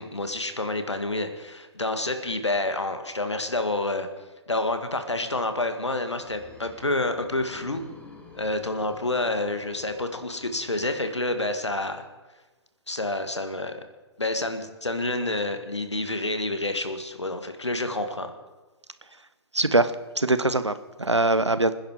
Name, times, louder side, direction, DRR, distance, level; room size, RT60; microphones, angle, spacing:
voice 1, 0.0-4.1 4.5-7.8 8.4-12.0 12.9-13.8 14.2-18.3, left 2 dB, 85° left, 7 dB, 1.9 m, -28 dB
sound 1, 5.6-11.5, left 4 dB, 10° left, 2.0 m, -48 dB
voice 2, 19.5-21.7, right 2 dB, 90° right, 13 dB, 1.0 m, -23 dB
26.5 x 10.5 x 4.9 m, 1.2 s
figure-of-eight pair, 120°, 14 cm